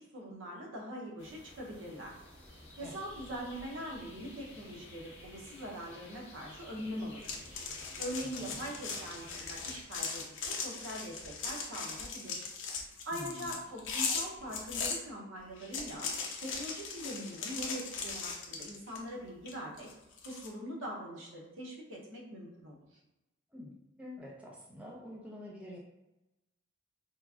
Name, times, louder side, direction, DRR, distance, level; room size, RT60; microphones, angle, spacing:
voice 1, 0.0-2.2 2.8-7.7 8.0-12.5 13.0-16.1 16.4-19.9 20.2-23.0, equal, 75° right, -2 dB, 0.7 m, -42 dB
sound 1, 1.2-9.8, left 1 dB, 55° left, 0.9 m, -53 dB
sound 2, 7.2-15.0 15.6-19.1 19.5-20.5, left 5 dB, 70° left, 0.5 m, -39 dB
voice 2, 8.2-8.6 13.1-13.6 23.5-25.8, left 1 dB, 5° right, -4 dB, 0.3 m, -47 dB
2.9 x 2.4 x 2.4 m, 0.99 s
head